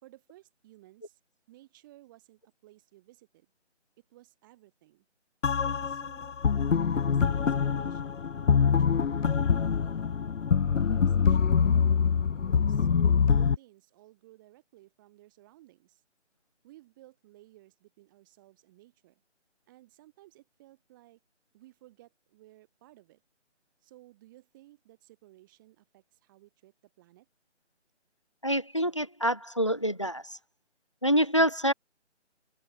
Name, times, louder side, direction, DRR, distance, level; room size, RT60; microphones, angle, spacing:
voice 1, 0.0-1.2 1.5-3.5 4.0-5.1 5.6-10.1 10.8-11.9 12.3-16.0 16.6-19.2 19.7-21.2 21.5-23.2 23.8-27.3, right 16 dB, 15° right, 5.5 m, -57 dB
sound 1, 5.4-13.6, left 6 dB, 85° left, 0.6 m, -25 dB
voice 2, 28.4-30.4 31.0-31.7, equal, 25° left, 0.5 m, -26 dB
figure-of-eight pair, 160°, 36 cm